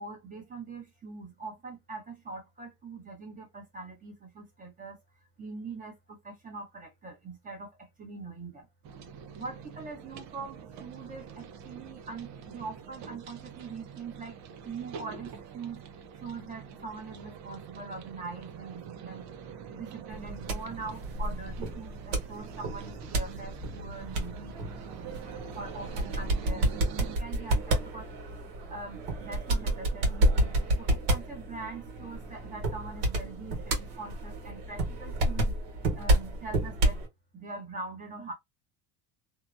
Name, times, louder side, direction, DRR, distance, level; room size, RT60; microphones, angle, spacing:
voice 1, 0.0-5.0 5.4-8.7 9.3-14.4 14.6-15.8 16.2-19.3 19.7-24.5 25.5-26.7 27.0-28.1 28.4-35.6 35.9-37.0 37.3-38.3, right 3 dB, 20° right, 0.9 m, -42 dB
sound 1, 8.8-27.2, right 7 dB, 40° right, 0.4 m, -46 dB
sound 2, 20.1-37.1, right 1 dB, 60° right, 1.3 m, -30 dB
2.8 x 2.1 x 2.4 m
cardioid pair, 140°, 46 cm